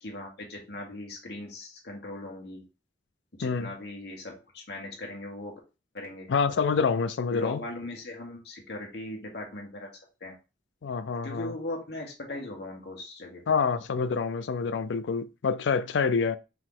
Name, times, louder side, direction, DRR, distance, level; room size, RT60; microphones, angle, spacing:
voice 1, 0.0-2.6 3.3-5.6 5.9-6.3 7.3-10.4 11.2-13.5, left 2 dB, 60° left, 1.4 m, -39 dB
voice 2, 6.3-7.6 10.8-11.5 13.5-16.4, left 5 dB, 80° left, 0.4 m, -27 dB
4.7 x 3.0 x 3.7 m
head